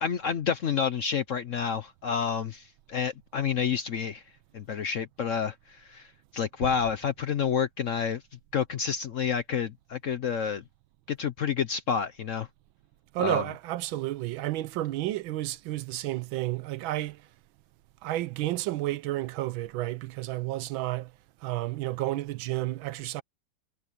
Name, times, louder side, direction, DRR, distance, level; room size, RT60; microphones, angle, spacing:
voice 1, 0.0-4.2 4.5-6.1 6.3-8.2 8.5-10.6 11.1-12.5 13.2-13.4, left 7 dB, 60° left, 0.8 m, -29 dB
Bass drum, 6.6-8.0, right 10 dB, 70° right, 1.7 m, -44 dB
voice 2, 13.1-17.2 18.0-21.1 21.4-23.2, right 16 dB, 90° right, 1.5 m, -31 dB
omnidirectional pair, 2.1 m